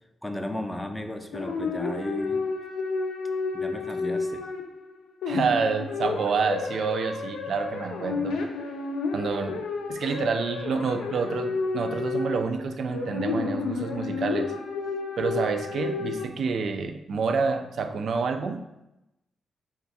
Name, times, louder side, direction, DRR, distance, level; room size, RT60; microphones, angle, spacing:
voice 1, 0.2-2.5 3.5-4.4 15.4-15.5, left 1 dB, 10° left, 6 dB, 0.4 m, -34 dB
sound 1, 1.3-4.9 5.2-16.2, left 4 dB, 90° left, 0.3 m, -31 dB
voice 2, 5.3-8.4 9.1-9.6 9.9-14.5 15.2-18.6, right 5 dB, 70° right, 7 dB, 0.3 m, -28 dB
2.5 x 2.3 x 4.0 m, 0.91 s
supercardioid pair, 55°, 0 cm